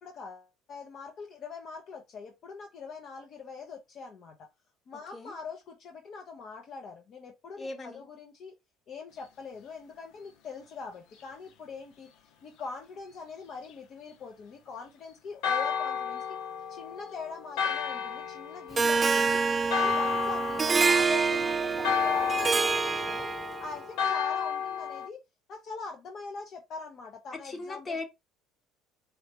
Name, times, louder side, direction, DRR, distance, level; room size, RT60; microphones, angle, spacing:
voice 1, 0.0-4.4 4.9-8.6 8.9-12.1 12.4-16.4 16.7-19.4 19.7-23.3 23.6-25.2 25.5-28.0, left 4 dB, 50° left, 1.0 m, -43 dB
voice 2, 7.6-8.1 27.3-28.0, left 3 dB, 30° left, 1.5 m, -38 dB
Church bell, 15.4-25.1, left 7 dB, 75° left, 0.8 m, -32 dB
Harp, 18.8-23.8, right 4 dB, 25° right, 0.3 m, -27 dB
4.7 x 3.3 x 3.0 m
supercardioid pair, 95°, 0 cm